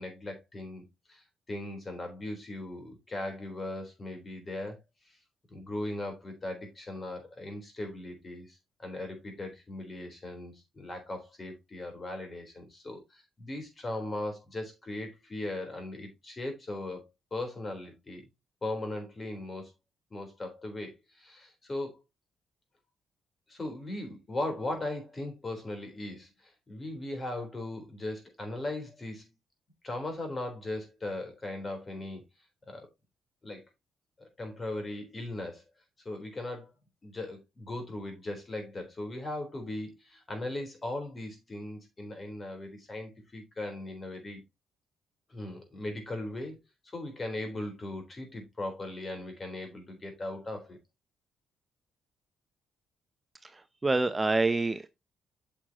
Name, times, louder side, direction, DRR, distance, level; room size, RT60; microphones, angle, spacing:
voice 1, 0.0-4.8 5.1-5.2 5.5-18.3 18.6-19.7 20.1-22.0 23.5-29.3 29.8-32.2 32.7-32.9 33.4-33.6 34.2-35.6 36.1-36.7 37.0-44.4 45.3-46.5 46.9-50.8, left 1 dB, 30° left, 3.8 m, -38 dB
voice 2, 53.8-54.9, right 3 dB, 20° right, 0.6 m, -26 dB
8.5 x 6.3 x 2.9 m
cardioid pair, 90°, 0 cm